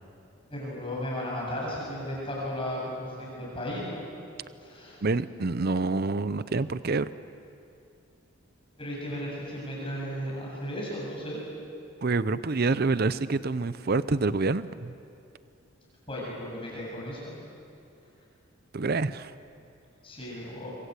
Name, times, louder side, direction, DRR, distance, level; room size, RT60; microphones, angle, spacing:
voice 1, 0.5-4.0 4.6-5.0 8.8-11.4 16.1-17.4 20.0-20.7, equal, 25° left, -4 dB, 7.9 m, -35 dB
voice 2, 5.0-7.1 12.0-14.9 18.7-19.3, right 3 dB, 45° right, 15 dB, 0.6 m, -27 dB
26.0 x 26.0 x 8.3 m, 2.5 s
head